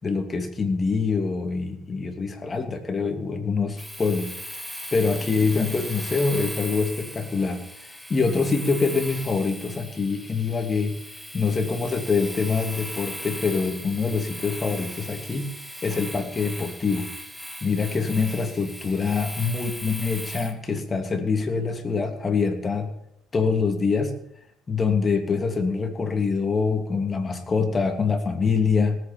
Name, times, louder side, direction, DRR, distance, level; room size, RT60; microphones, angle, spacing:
voice 1, 0.0-4.3 4.9-7.6 7.9-10.9 11.3-15.5 15.8-17.1 17.6-22.9 23.3-24.1 24.7-29.0, left 4 dB, 30° left, 6 dB, 2.9 m, -25 dB
Domestic sounds home sounds, 3.8-20.6, equal, ahead, 2.6 m, -38 dB
18.0 x 8.7 x 7.3 m, 0.73 s
supercardioid pair, 70°, 0 cm